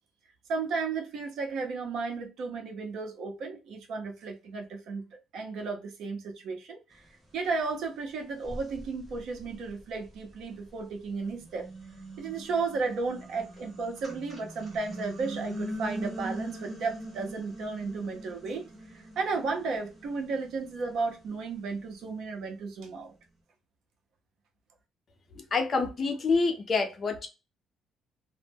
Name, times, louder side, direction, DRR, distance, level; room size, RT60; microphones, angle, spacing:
voice 1, 0.5-5.0 5.3-7.0 7.3-11.7 12.2-23.1, right 4 dB, 65° right, 0.6 m, -34 dB
sound 1, 7.7-7.8 8.4-10.7 11.2-22.5, right 1 dB, 15° right, 0.9 m, -42 dB
voice 2, 25.3-27.3, left 4 dB, 35° left, 0.5 m, -27 dB
2.1 x 2.0 x 3.2 m
cardioid pair, 140°, 0 cm